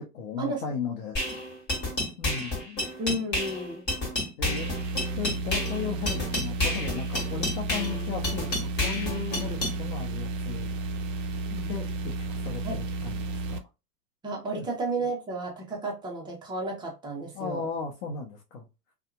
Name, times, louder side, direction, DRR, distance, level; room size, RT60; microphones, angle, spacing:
voice 1, 0.1-1.2 2.2-2.9 4.4-4.7 5.1-10.7 11.5-13.6 14.5-14.7 17.3-18.7, left 6 dB, 55° left, 0.9 m, -36 dB
sound 1, 1.2-9.8, left 1 dB, 20° left, 1.6 m, -30 dB
voice 2, 3.0-3.8 12.6-12.8 14.2-17.7, right 2 dB, 10° right, 0.9 m, -32 dB
sound 2, 4.4-13.6, right 2 dB, 50° right, 0.6 m, -32 dB
2.7 x 2.5 x 2.4 m
hypercardioid pair, 105°, 49 cm